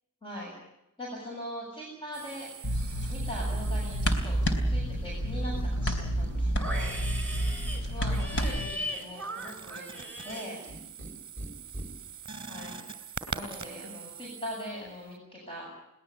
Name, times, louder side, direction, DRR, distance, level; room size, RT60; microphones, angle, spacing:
voice 1, 0.2-0.5 1.0-2.5 3.1-4.4 4.7-6.9 7.9-10.6 12.5-12.8 13.3-15.7, equal, 25° left, -3 dB, 7.2 m, -41 dB
sound 1, 2.1-4.6 7.0-8.1 8.5-15.1, right 5 dB, 25° right, 2.8 m, -44 dB
sound 2, 2.6-8.7, equal, 55° left, 3.9 m, -29 dB
Livestock farm animals working animals, 3.5-4.2 4.4-5.2 5.5-11.1 11.4-11.9, equal, 10° left, 4.6 m, -39 dB
22.0 x 19.0 x 8.5 m, 0.87 s
head